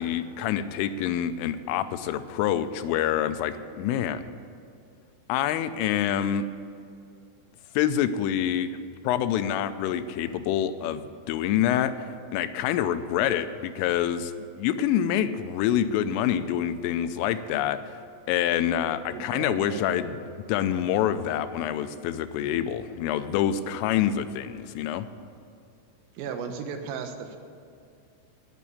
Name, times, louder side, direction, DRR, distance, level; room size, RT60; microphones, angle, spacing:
voice 1, 0.0-4.3 5.3-6.4 7.8-8.7 9.0-12.1 12.3-14.3 14.6-17.8 18.3-20.2 20.5-25.1, left 10 dB, 85° left, 11 dB, 3.2 m, -26 dB
voice 2, 19.1-20.0 26.2-27.4, right 6 dB, 85° right, 6 dB, 3.8 m, -35 dB
17.5 x 6.8 x 8.6 m, 2.5 s
omnidirectional pair, 5.7 m